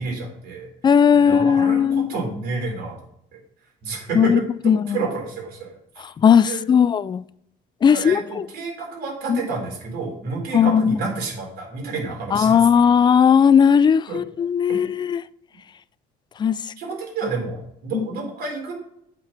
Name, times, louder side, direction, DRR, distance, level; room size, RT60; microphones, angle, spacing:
voice 1, 0.0-0.7 1.2-3.0 3.3-3.4 3.8-5.8 6.5-6.6 7.9-12.7 14.1-14.2 16.8-18.7, right 4 dB, 70° right, 4.0 m, -30 dB
voice 2, 0.8-2.1 4.1-4.4 4.6-5.0 6.2-7.2 7.8-8.4 9.3-9.4 10.5-11.0 12.3-15.2 16.4-16.6 17.9-18.1, left 7 dB, 25° left, 0.3 m, -17 dB
8.5 x 5.1 x 5.9 m
cardioid pair, 110°, 17 cm